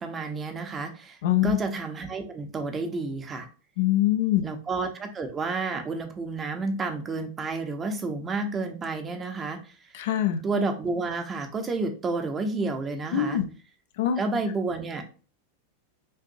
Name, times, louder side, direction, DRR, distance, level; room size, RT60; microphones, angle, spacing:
voice 1, 0.0-1.2 1.4-3.5 4.4-9.7 10.4-13.4 14.2-15.0, right 3 dB, 20° right, 6 dB, 0.7 m, -30 dB
voice 2, 1.2-1.6 3.8-4.4 9.9-10.4 13.1-13.4 14.0-14.2, left 12 dB, 55° left, 7 dB, 0.5 m, -23 dB
5.4 x 2.6 x 2.6 m, 0.37 s
figure-of-eight pair, 90°, 0 cm